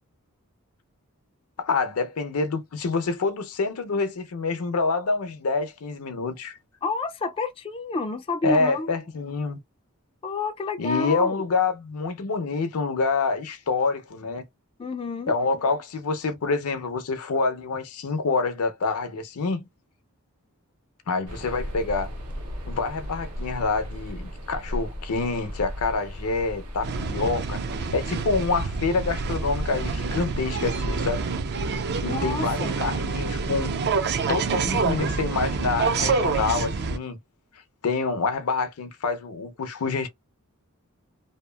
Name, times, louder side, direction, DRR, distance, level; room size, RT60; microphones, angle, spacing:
voice 1, 1.6-6.6 8.4-9.6 10.8-14.4 15.3-19.7 21.1-22.1 22.7-27.6 27.9-31.3 32.0-33.7 34.3-37.2 37.8-40.1, left 4 dB, 75° left, 0.6 m, -27 dB
voice 2, 6.8-8.9 10.2-11.4 14.8-15.3 32.0-32.8, left 4 dB, 25° left, 0.3 m, -29 dB
sound 1, 21.3-31.4, equal, 85° right, 0.7 m, -36 dB
sound 2, 26.8-37.0, right 4 dB, 50° right, 0.4 m, -27 dB
2.8 x 2.4 x 2.2 m
head